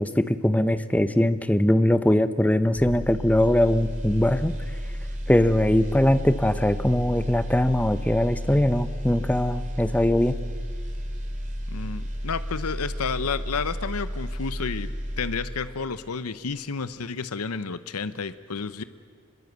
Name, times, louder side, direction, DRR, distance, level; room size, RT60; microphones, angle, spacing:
voice 1, 0.0-4.5 5.3-10.4, left 1 dB, 5° left, 12 dB, 0.7 m, -21 dB
sound 1, 2.7-15.9 16.2-16.4, equal, 35° right, 3.4 m, -32 dB
voice 2, 11.7-14.9 15.2-18.8, left 5 dB, 80° left, 13 dB, 0.8 m, -31 dB
25.5 x 21.5 x 8.1 m, 2.1 s
head